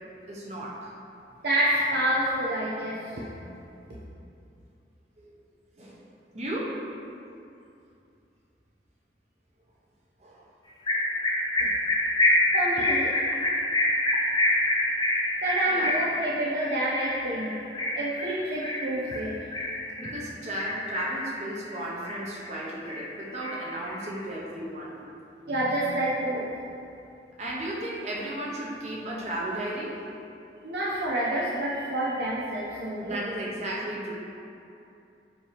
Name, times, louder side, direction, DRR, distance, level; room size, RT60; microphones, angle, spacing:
voice 1, 0.3-0.9 5.2-5.3 5.8-6.0 6.3-6.8 10.2-10.4 15.7-15.9 20.0-24.9 27.4-30.0 33.0-34.1, right 1 dB, 40° right, -4 dB, 1.0 m, -34 dB
voice 2, 1.4-3.1 12.5-13.2 15.4-17.6 17.9-19.5 25.5-26.6 30.6-33.2, right 1 dB, 65° right, -6 dB, 0.7 m, -28 dB
sound 1, 10.9-20.2 20.6-21.3 21.7-22.6 22.8-24.2, left 1 dB, 25° left, 0.7 m, -26 dB
7.3 x 2.9 x 5.1 m, 2.6 s
head